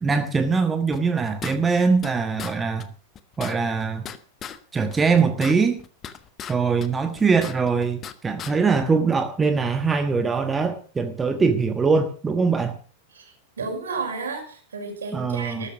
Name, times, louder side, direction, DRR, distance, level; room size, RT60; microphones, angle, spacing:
voice 1, 0.0-2.9 3.4-4.1 4.7-5.8 6.5-12.8 15.1-15.7, right 5 dB, 15° right, 8 dB, 1.3 m, -22 dB
sound 1, 0.9-2.1 2.4-2.5 2.8-2.9 3.1-4.6 4.9-6.5 6.8-8.1 8.4-8.5, left 9 dB, 25° left, 1.3 m, -37 dB
voice 2, 13.6-15.7, right 4 dB, 70° right, 3 dB, 5.6 m, -32 dB
13.5 x 13.0 x 6.0 m, 0.42 s
figure-of-eight pair, 90°, 0 cm